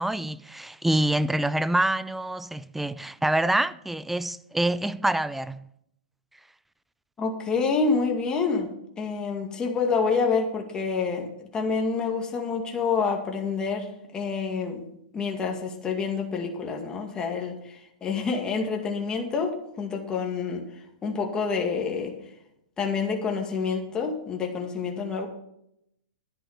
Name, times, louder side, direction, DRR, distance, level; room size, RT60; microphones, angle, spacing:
voice 1, 0.0-5.6, right 1 dB, 5° right, 0.5 m, -26 dB
voice 2, 7.2-8.7 9.0-14.8 15.1-20.6 21.0-22.1 22.8-25.3, left 5 dB, 15° left, 2.2 m, -27 dB
11.5 x 10.0 x 5.1 m
hypercardioid pair, 135°, 5 cm